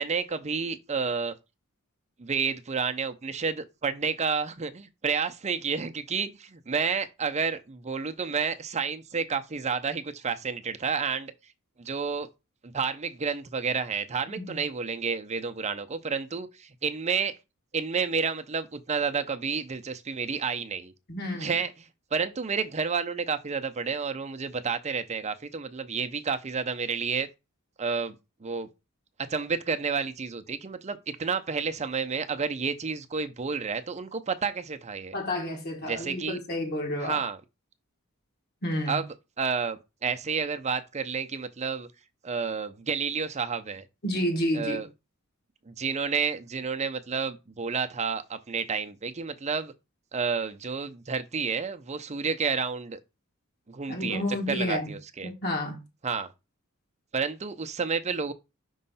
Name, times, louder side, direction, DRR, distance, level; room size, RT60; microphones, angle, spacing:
voice 1, 0.0-1.3 2.2-11.3 11.8-12.3 12.6-17.3 17.7-20.9 21.4-27.3 27.8-28.2 28.4-28.7 29.3-35.2 35.8-36.4 37.0-37.4 38.9-41.9 42.2-43.9 44.5-44.9 45.7-49.7 50.1-53.0 53.7-55.3 56.0-56.3 57.1-58.3, right 5 dB, 30° right, 0.6 m, -30 dB
voice 2, 14.3-14.6 21.1-21.5 35.1-37.2 38.6-39.0 44.0-44.8 53.9-54.9 55.2-55.8, left 1 dB, 50° left, 1.5 m, -30 dB
5.5 x 3.1 x 5.5 m
head